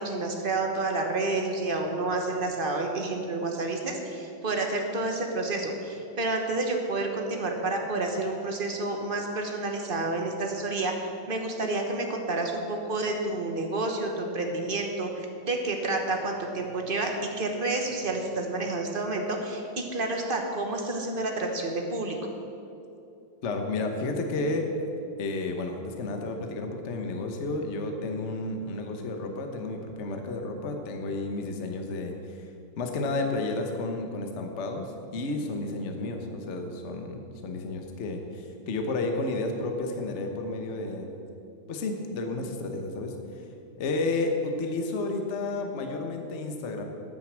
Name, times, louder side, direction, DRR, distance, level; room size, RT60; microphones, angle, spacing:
voice 1, 0.0-17.1 17.4-22.2, right 2 dB, 35° right, 2 dB, 1.1 m, -29 dB
voice 2, 23.4-24.7 25.2-32.5 32.8-41.1 41.7-43.4 43.8-46.8, left 2 dB, 40° left, 4 dB, 1.1 m, -31 dB
9.5 x 9.4 x 7.4 m, 2.7 s
omnidirectional pair, 2.3 m